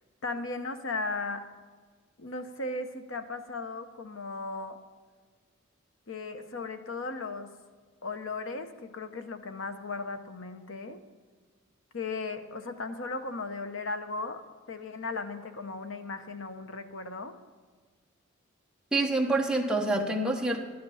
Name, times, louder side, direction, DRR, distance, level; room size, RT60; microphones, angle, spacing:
voice 1, 0.2-1.4 2.2-4.8 6.1-7.5 8.0-11.0 11.9-14.4 14.7-17.3, left 3 dB, 70° left, 8 dB, 0.9 m, -36 dB
voice 2, 18.9-20.6, right 2 dB, 5° right, 0 dB, 1.2 m, -27 dB
12.0 x 9.7 x 5.6 m, 1.5 s
head